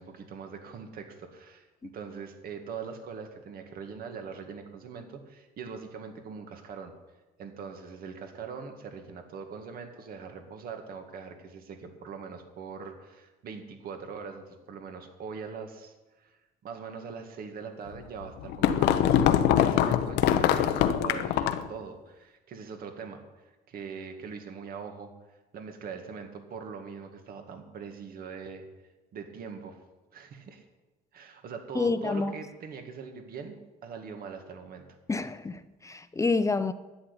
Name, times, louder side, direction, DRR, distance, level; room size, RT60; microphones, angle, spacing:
voice 1, 0.0-6.9 7.4-25.1 25.5-28.6 29.1-29.8 30.1-30.7 31.1-33.6 33.8-35.0, right 5 dB, 60° right, 5 dB, 2.1 m, -42 dB
sound 1, 18.0-21.7, left 10 dB, 85° left, 0.9 m, -23 dB
voice 2, 31.7-32.3 35.1-36.7, left 3 dB, 20° left, 12 dB, 0.7 m, -28 dB
11.0 x 8.6 x 9.9 m, 1.1 s
cardioid pair, 110°, 17 cm